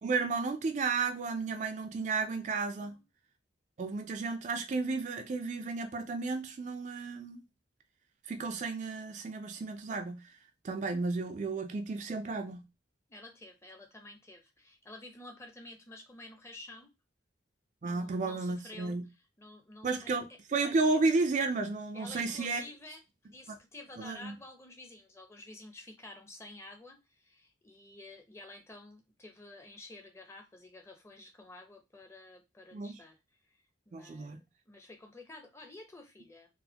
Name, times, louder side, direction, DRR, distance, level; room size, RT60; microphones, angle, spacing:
voice 1, 0.0-3.0 3.8-7.4 8.3-10.2 10.6-12.6 17.8-19.0 19.8-22.6 23.5-23.6 24.0-24.4 32.7-33.0 33.9-34.4, right 3 dB, 40° right, 0.3 m, -33 dB
voice 2, 13.1-16.9 17.8-20.1 21.9-33.2 33.4-34.4 34.7-36.5, left 2 dB, 15° left, 0.6 m, -51 dB
4.0 x 2.1 x 2.7 m
head